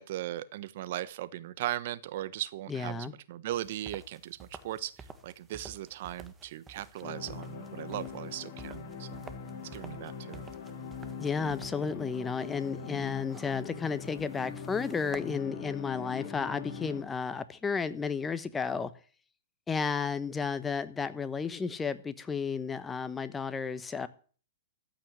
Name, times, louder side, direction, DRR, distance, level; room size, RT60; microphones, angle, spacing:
voice 1, 0.0-9.2 9.7-10.5, right 13 dB, 55° right, 1.1 m, -38 dB
voice 2, 2.7-3.1 11.2-18.9 19.7-24.1, left 5 dB, 15° left, 1.1 m, -33 dB
sound 1, 3.5-15.4, right 4 dB, 20° right, 1.6 m, -52 dB
sound 2, 7.0-17.0, left 6 dB, 50° left, 3.7 m, -42 dB
14.0 x 6.0 x 9.7 m
hypercardioid pair, 120°, 0 cm